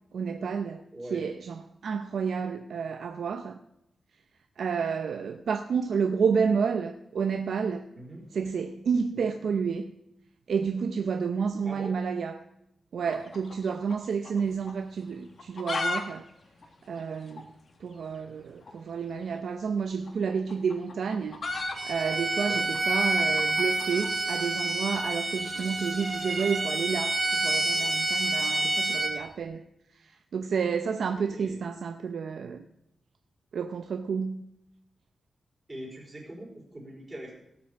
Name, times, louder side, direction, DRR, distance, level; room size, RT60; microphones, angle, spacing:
voice 1, 0.1-0.8 1.1-3.6 4.6-7.9 8.3-9.9 10.5-12.4 12.9-16.3 16.9-17.5 17.8-21.4 21.8-29.7 30.0-32.6 33.5-34.4, right 6 dB, 75° right, 0.7 m, -30 dB
voice 2, 0.9-1.2 7.9-8.3 9.1-9.3 11.6-12.0 22.4-22.7 28.4-28.9 30.9-31.6 35.7-37.3, right 1 dB, 15° right, 4.7 m, -43 dB
sound 1, 13.1-14.4 14.7-14.8 15.3-16.0 16.3-16.4 16.6-16.7 17.3-17.4 18.6-18.8 19.9-24.1, left 3 dB, 45° left, 1.5 m, -35 dB
Bowed string instrument, 21.7-29.1, right 2 dB, 30° right, 2.0 m, -28 dB
17.5 x 6.1 x 7.3 m
wide cardioid pair, 160°, 0 cm